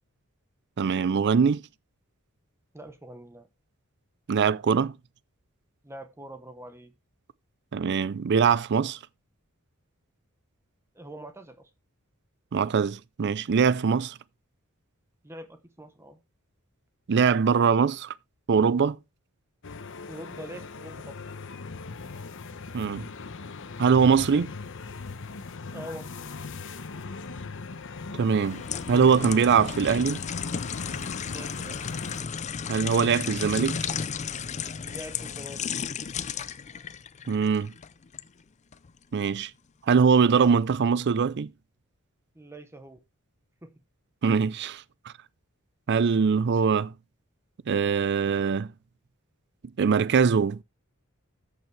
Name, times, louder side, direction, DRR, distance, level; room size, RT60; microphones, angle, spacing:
voice 1, 0.8-1.6 4.3-4.9 7.7-9.0 12.5-14.2 17.1-18.1 18.5-19.0 22.7-23.1 23.8-24.5 28.2-28.6 28.9-30.2 32.7-33.8 37.3-37.7 39.1-39.5 39.9-41.5 44.2-44.8 45.9-46.9 47.7-48.7 49.8-50.6, right 6 dB, 55° right, 0.5 m, -22 dB
voice 2, 2.7-3.5 5.8-6.9 10.9-11.7 15.2-16.2 20.0-21.2 25.7-26.1 31.3-31.8 34.8-35.6 42.3-43.0 43.6-43.7, right 1 dB, 10° right, 0.9 m, -43 dB
sound 1, 19.6-32.2, left 4 dB, 60° left, 0.9 m, -39 dB
sound 2, 28.3-38.3 38.7-38.9, left 6 dB, 35° left, 0.5 m, -34 dB
13.5 x 6.9 x 3.2 m
head